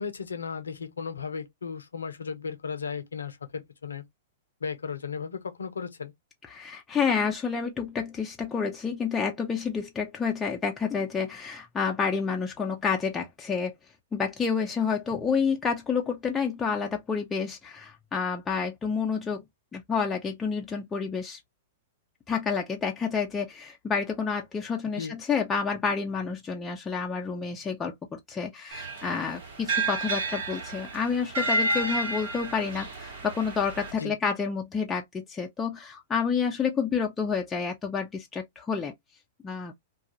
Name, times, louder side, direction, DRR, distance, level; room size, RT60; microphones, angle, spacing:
voice 1, 0.0-4.0 4.6-6.1 25.0-25.2 34.0-34.2, left 5 dB, 85° left, 0.6 m, -35 dB
voice 2, 6.5-13.7 14.1-19.4 19.7-21.4 22.3-38.9 39.4-39.7, left 5 dB, 15° left, 0.6 m, -29 dB
sound 1, 28.7-33.9, right 2 dB, 60° right, 1.2 m, -31 dB
2.4 x 2.3 x 2.8 m
hypercardioid pair, 110°, 0 cm